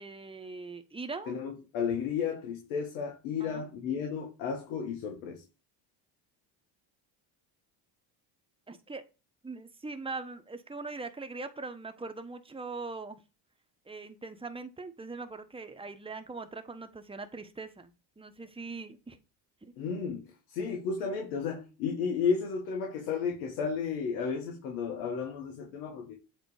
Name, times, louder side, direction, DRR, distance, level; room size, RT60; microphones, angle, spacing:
voice 1, 0.0-1.3 3.4-3.6 8.7-9.0 9.4-13.2 13.9-19.2 19.6-19.7, right 3 dB, 10° right, 1.1 m, -41 dB
voice 2, 1.3-5.4 19.8-26.2, left 6 dB, 85° left, 1.5 m, -33 dB
8.0 x 3.3 x 4.9 m
supercardioid pair, 70°, 49 cm